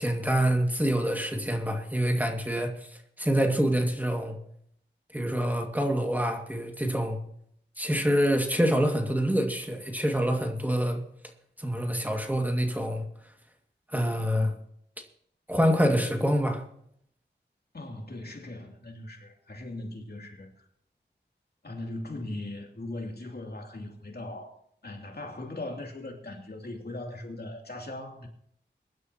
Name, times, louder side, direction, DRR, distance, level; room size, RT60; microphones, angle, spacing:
voice 1, 0.0-2.7 3.2-4.4 5.1-7.2 7.8-11.0 11.6-13.0 13.9-14.5 15.5-16.6, equal, 10° right, 2.1 m, -26 dB
voice 2, 17.7-20.6 21.6-28.3, left 2 dB, 60° left, 2.9 m, -39 dB
23.0 x 11.5 x 3.0 m
wide cardioid pair, 65°, 19 cm